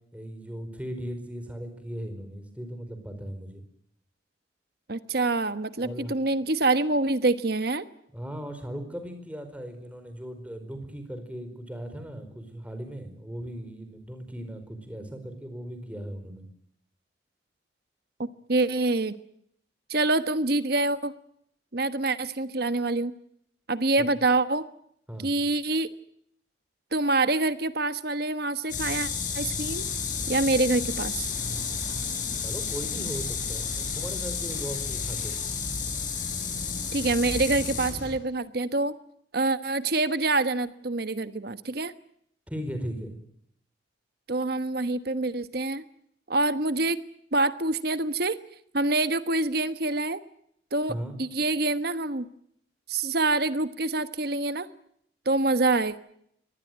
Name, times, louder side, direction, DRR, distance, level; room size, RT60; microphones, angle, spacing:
voice 1, 0.1-3.6 5.8-6.1 8.1-16.5 24.0-24.1 25.1-25.3 32.4-35.4 42.5-43.2 50.9-51.2, equal, 5° right, 7 dB, 4.8 m, -37 dB
voice 2, 4.9-7.8 18.2-19.2 19.9-21.1 21.7-23.1 23.7-24.7 25.2-25.9 26.9-29.1 29.3-29.8 30.3-31.3 36.9-38.9 39.3-41.9 44.3-45.8 46.3-47.0 47.3-48.4 48.7-50.2 50.7-50.9 51.2-52.3 52.9-54.7 55.2-56.0, right 2 dB, 55° right, 12 dB, 1.2 m, -26 dB
sound 1, 28.7-38.1, left 5 dB, 45° left, 7.5 m, -31 dB
24.0 x 19.0 x 9.3 m, 0.70 s
head